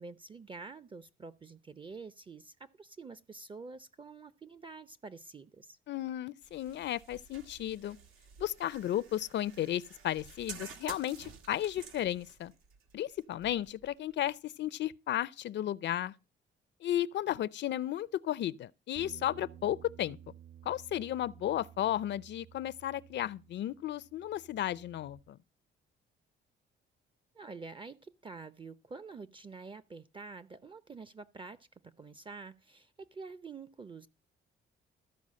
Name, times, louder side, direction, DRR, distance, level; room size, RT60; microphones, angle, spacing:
voice 1, 0.0-5.8 27.3-34.1, right 4 dB, 25° right, 0.6 m, -47 dB
voice 2, 5.9-8.0 8.4-12.5 12.9-16.1 16.8-20.2 20.7-25.4, left 12 dB, 65° left, 0.5 m, -34 dB
sound 1, 6.4-14.3, right 5 dB, 85° right, 1.7 m, -52 dB
Bass guitar, 19.0-25.2, right 10 dB, 55° right, 1.3 m, -55 dB
13.5 x 4.8 x 7.4 m
cardioid pair, 90°, 20 cm